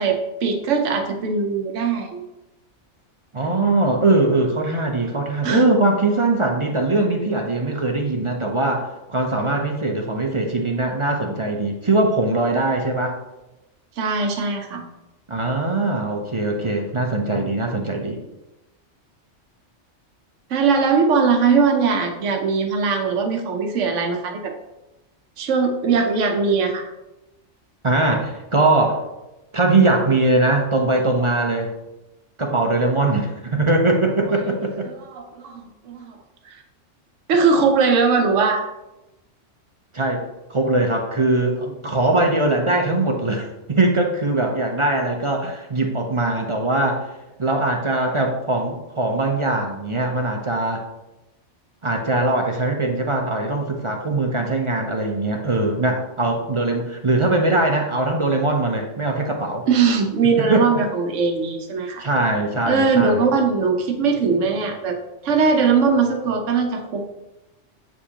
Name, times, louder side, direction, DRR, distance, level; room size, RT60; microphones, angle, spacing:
voice 1, 0.0-2.2 5.4-5.7 14.0-14.8 20.5-24.5 25.4-26.9 34.8-36.2 36.5-36.6 37.3-38.6 59.7-62.0 62.7-65.0 65.2-67.1, right 5 dB, 85° right, 4 dB, 1.1 m, -20 dB
voice 2, 3.3-13.1 15.3-18.2 27.8-29.0 29.5-31.7 32.4-34.9 39.9-40.2 40.5-47.1 47.4-50.8 51.8-59.7 60.5-60.8 62.0-63.2, right 2 dB, 35° right, 2 dB, 0.6 m, -21 dB
7.9 x 5.0 x 2.9 m, 0.97 s
omnidirectional pair, 1.2 m